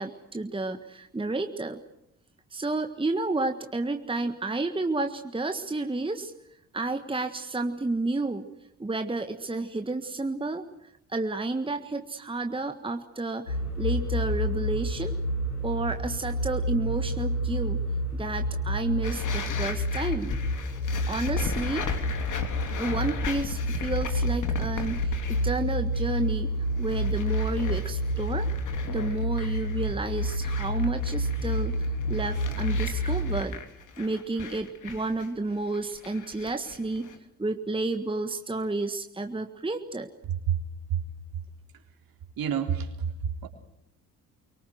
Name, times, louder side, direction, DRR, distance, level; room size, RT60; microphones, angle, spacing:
voice 1, 0.0-1.8 2.5-6.3 6.7-8.5 8.8-10.6 11.1-15.2 15.6-17.8 18.1-20.4 21.1-21.9 22.7-26.5 26.8-28.5 28.9-33.5 34.0-37.1 37.4-40.1, right 2 dB, 10° right, 7 dB, 1.6 m, -31 dB
sound 1, 13.5-33.4, equal, 85° left, 3.6 m, -29 dB
sound 2, 19.0-25.7 25.9-26.3 26.7-37.2, left 5 dB, 45° left, 3.2 m, -37 dB
voice 2, 40.3-40.6 40.9-41.0 41.3-41.4 41.7-41.8 42.4-43.5, right 8 dB, 50° right, 4 dB, 3.8 m, -29 dB
25.0 x 24.0 x 7.8 m, 0.80 s
figure-of-eight pair, 45°, 44 cm